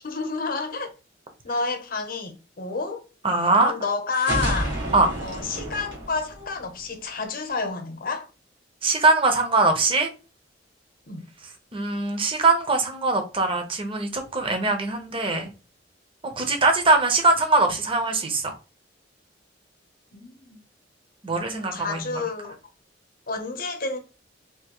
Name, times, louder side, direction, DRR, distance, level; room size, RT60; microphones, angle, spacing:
voice 1, 0.0-0.9 1.4-3.0 3.6-4.7 5.2-8.3 11.1-11.3 20.1-20.6 21.6-22.6 23.3-24.0, left 4 dB, 50° left, 0.8 m, -30 dB
voice 2, 3.2-3.7 4.9-5.1 8.8-10.1 11.7-15.5 16.4-18.5 21.2-22.0, right 3 dB, 30° right, 0.7 m, -22 dB
sound 1, 4.1-7.0, right 1 dB, 75° right, 1.5 m, -30 dB
3.5 x 2.6 x 2.9 m
head